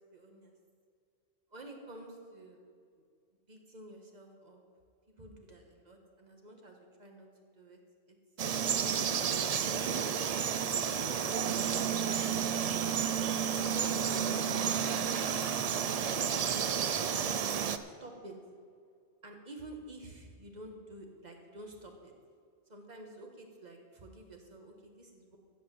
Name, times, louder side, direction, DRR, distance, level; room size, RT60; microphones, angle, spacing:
voice 1, 0.1-0.5 1.5-2.6 3.5-4.6 5.2-7.3 7.5-7.8 8.1-8.2 11.7-12.7 13.4-15.1 18.0-18.4 19.2-22.1 22.7-25.4, right 1 dB, 35° right, 2 dB, 1.5 m, -49 dB
Frog, 8.4-17.8, right 8 dB, 60° right, 0.4 m, -31 dB
15.0 x 5.1 x 7.5 m, 2.2 s
omnidirectional pair, 1.2 m